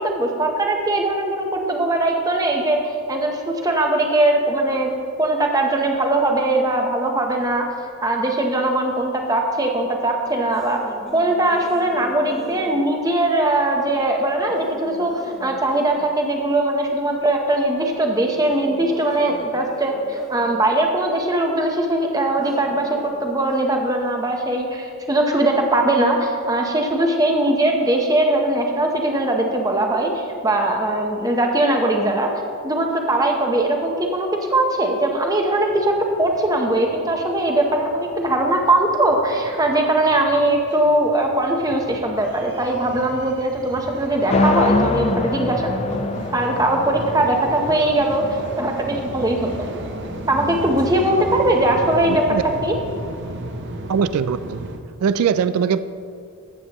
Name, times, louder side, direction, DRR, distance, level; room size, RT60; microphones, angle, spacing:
voice 1, 0.0-2.8 3.1-4.9 5.2-7.7 8.0-10.8 11.1-32.3 32.6-35.9 36.2-45.7 46.3-48.3 48.6-49.7 50.3-52.2 52.6-52.7, right 1 dB, 15° right, 2 dB, 0.9 m, -20 dB
sound 1, 10.5-12.9 14.5-16.1 18.3-20.6 22.3-23.9, equal, ahead, 1.3 m, -40 dB
sound 2, 35.7-54.8, right 1 dB, 55° right, 0.7 m, -35 dB
sound 3, 44.3-50.4, left 3 dB, 30° left, 0.3 m, -25 dB
voice 2, 52.1-52.4 53.9-54.6 55.0-55.8, right 7 dB, 90° right, 14 dB, 0.3 m, -21 dB
14.5 x 8.1 x 3.0 m, 2.5 s
head